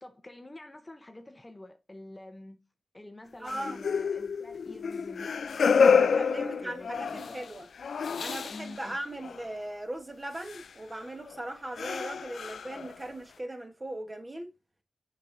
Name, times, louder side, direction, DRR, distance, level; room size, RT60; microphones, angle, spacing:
voice 1, 0.0-2.6 2.9-7.4 8.5-9.0, left 2 dB, 20° left, 0.7 m, -47 dB
voice 2, 3.4-3.8 6.0-7.7 8.2-14.5, right 1 dB, 25° right, 1.2 m, -39 dB
sound 1, 3.5-8.9 9.2-9.4 10.5-10.7 11.3-11.4 11.8-13.1, left 6 dB, 80° left, 0.3 m, -28 dB
7.3 x 6.0 x 2.6 m
wide cardioid pair, 90°, 0 cm